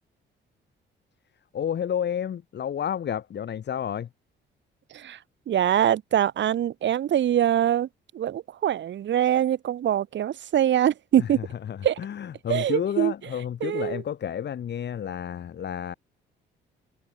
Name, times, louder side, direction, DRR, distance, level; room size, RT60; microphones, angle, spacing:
voice 1, 1.5-4.1 11.2-15.9, left 9 dB, 60° left, 7.5 m, -31 dB
voice 2, 5.5-7.9 8.1-11.4 11.8-12.0 12.5-13.1 13.6-14.0, right 10 dB, 65° right, 3.1 m, -23 dB
cardioid pair, 90°, 20 cm